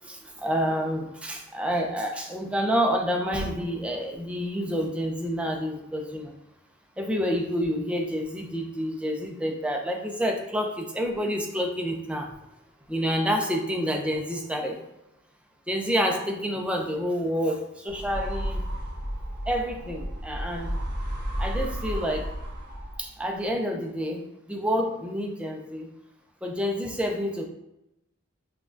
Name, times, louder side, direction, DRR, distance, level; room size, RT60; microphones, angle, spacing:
voice 1, 0.0-6.3 7.0-12.3 12.9-14.8 15.7-18.6 19.5-20.8 21.4-22.3 23.0-25.9 26.4-27.5, equal, 5° right, 2 dB, 0.4 m, -28 dB
sound 1, 17.9-23.2, equal, 20° right, 1.1 m, -32 dB
5.8 x 2.2 x 2.5 m, 0.86 s
head